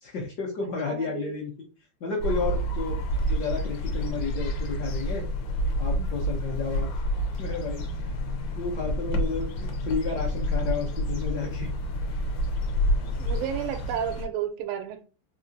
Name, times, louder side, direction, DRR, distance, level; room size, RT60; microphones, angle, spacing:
voice 1, 0.0-1.5 2.0-3.0 3.3-5.2 5.8-6.9 7.4-8.1 8.6-11.7, left 4 dB, 65° left, 1.0 m, -32 dB
voice 2, 0.9-1.4 13.2-15.0, right 9 dB, 90° right, 1.5 m, -32 dB
sound 1, 2.2-14.3, equal, 85° left, 1.6 m, -29 dB
3.7 x 2.3 x 2.5 m
omnidirectional pair, 2.4 m